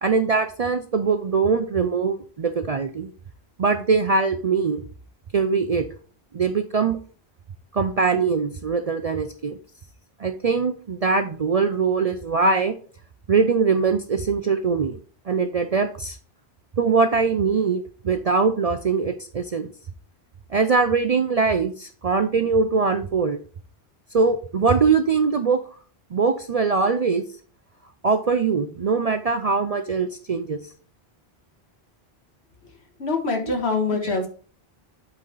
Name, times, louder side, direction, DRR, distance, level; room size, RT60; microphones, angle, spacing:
voice 1, 0.0-3.1 3.6-4.8 5.3-5.9 6.3-7.0 7.7-9.6 10.2-12.8 13.3-15.0 15.3-16.2 16.8-19.7 20.5-23.4 24.1-25.6 26.1-27.2 28.0-30.6 34.0-34.2, right 4 dB, 50° right, 8 dB, 0.4 m, -22 dB
voice 2, 33.0-34.3, left 3 dB, 75° left, 4 dB, 1.6 m, -24 dB
8.3 x 4.1 x 3.9 m, 0.42 s
omnidirectional pair, 1.1 m